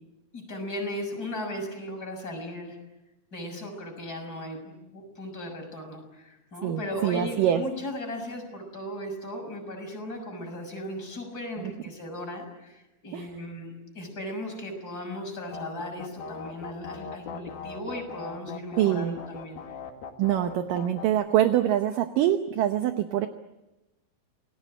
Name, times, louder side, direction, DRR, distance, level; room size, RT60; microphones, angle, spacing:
voice 1, 0.3-2.8 3.3-19.6, left 1 dB, 20° left, 2 dB, 6.8 m, -37 dB
voice 2, 6.6-7.6 11.6-11.7 13.1-13.3 18.8-19.2 20.2-23.3, right 11 dB, 75° right, 7 dB, 2.1 m, -24 dB
sound 1, 15.5-21.1, left 6 dB, 60° left, 3.8 m, -40 dB
29.0 x 19.5 x 8.7 m, 1.0 s
omnidirectional pair, 5.1 m